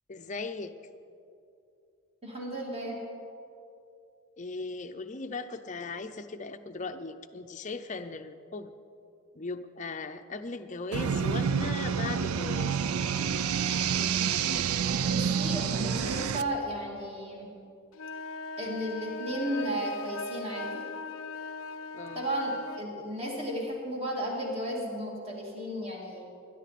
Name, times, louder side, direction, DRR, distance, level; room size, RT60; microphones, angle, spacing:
voice 1, 0.1-0.7 4.4-8.7 9.3-12.8 21.9-22.3, left 3 dB, 35° left, 9 dB, 0.5 m, -38 dB
voice 2, 2.2-3.0 15.0-17.5 18.6-20.8 22.1-26.2, right 1 dB, 30° right, -2 dB, 2.3 m, -34 dB
sound 1, 10.9-16.4, right 7 dB, 90° right, 0.4 m, -28 dB
sound 2, 17.9-22.9, left 3 dB, 75° left, 0.6 m, -39 dB
21.0 x 11.0 x 4.2 m, 2.6 s
head